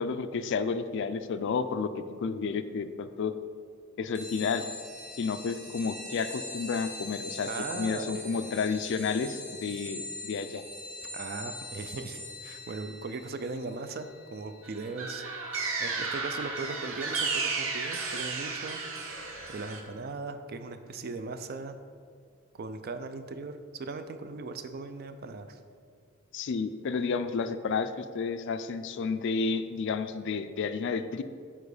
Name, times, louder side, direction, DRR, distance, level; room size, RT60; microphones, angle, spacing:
voice 1, 0.0-3.3 4.0-4.7 5.2-7.5 7.7-10.6 26.3-31.2, left 5 dB, 55° left, 11 dB, 0.4 m, -31 dB
sound 1, 4.1-16.2, left 1 dB, 25° right, 1.8 m, -43 dB
voice 2, 7.4-8.7 11.1-15.2 15.8-19.2 19.5-21.8 22.5-25.6, right 3 dB, 45° right, 9 dB, 0.4 m, -38 dB
sound 2, 14.6-19.8, right 4 dB, 65° right, 0.9 m, -33 dB
7.1 x 4.5 x 4.9 m, 2.1 s
head